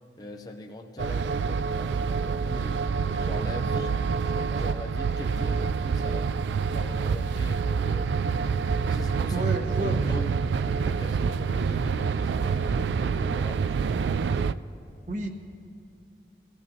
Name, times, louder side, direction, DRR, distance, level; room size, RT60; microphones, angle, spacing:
voice 1, 0.2-2.8 3.2-6.3 6.7-8.1 8.8-10.3 10.8-14.0, left 1 dB, 20° left, 3 dB, 0.6 m, -41 dB
sound 1, 1.0-14.5, right 5 dB, 80° right, 0.3 m, -27 dB
voice 2, 9.3-10.2 15.1-15.3, right 1 dB, 45° right, 3 dB, 1.2 m, -31 dB
23.5 x 15.0 x 2.8 m, 2.6 s
head